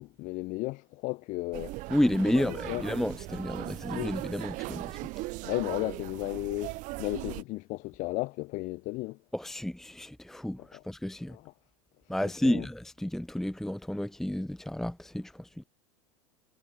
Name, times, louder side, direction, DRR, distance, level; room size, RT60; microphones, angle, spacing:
voice 1, 0.0-1.8 2.3-2.8 3.9-4.1 5.4-9.2 10.7-10.8 11.3-11.5 12.2-12.7, left 22 dB, 50° left, 1.3 m, -34 dB
sound 1, 1.5-7.4, right 21 dB, 50° right, 1.4 m, -39 dB
voice 2, 1.9-5.0 9.3-11.4 12.1-15.6, left 1 dB, ahead, 1.2 m, -31 dB
hypercardioid pair, 85°, 17 cm